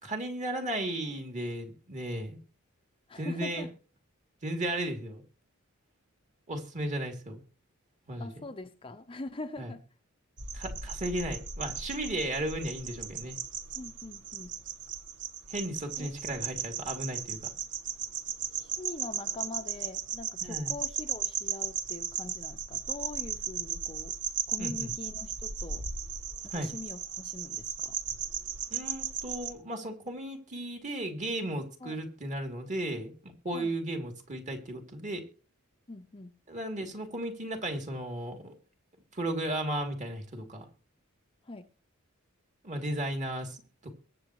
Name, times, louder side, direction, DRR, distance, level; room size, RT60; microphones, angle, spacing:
voice 1, 0.0-2.4 3.2-3.7 4.4-5.2 6.5-7.4 8.1-8.3 9.6-9.7 10.5-13.4 15.5-17.4 20.4-20.7 24.6-24.9 26.5-26.7 28.7-35.2 36.5-38.5 39.1-40.7 42.6-43.9, right 1 dB, 35° right, 2.7 m, -35 dB
voice 2, 3.1-3.7 8.2-9.8 13.7-14.5 16.0-16.1 18.5-24.2 24.5-25.9 26.4-28.0 31.8-32.0 33.5-33.8 35.9-36.3 41.4-41.7, left 2 dB, 25° left, 0.6 m, -43 dB
sound 1, 10.4-29.5, right 7 dB, 55° right, 1.2 m, -36 dB
23.0 x 7.8 x 3.1 m
head